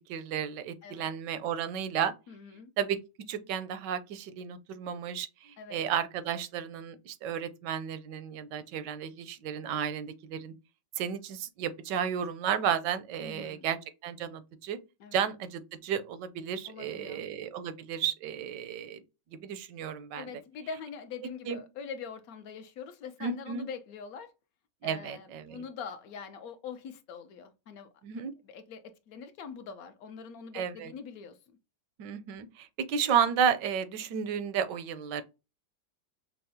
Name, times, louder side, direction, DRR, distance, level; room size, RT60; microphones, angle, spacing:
voice 1, 0.1-2.1 2.8-3.0 3.3-10.5 11.0-14.8 15.1-19.0 19.3-20.3 21.5-21.6 23.2-23.7 24.8-25.6 28.0-28.3 30.5-30.9 32.0-35.2, right 8 dB, 80° right, 1.2 m, -33 dB
voice 2, 2.3-2.7 5.6-5.8 13.2-13.7 15.0-15.2 16.6-17.2 20.2-24.3 24.8-27.9 28.4-31.4, left 6 dB, 70° left, 0.9 m, -43 dB
5.5 x 2.0 x 2.7 m
omnidirectional pair, 1.9 m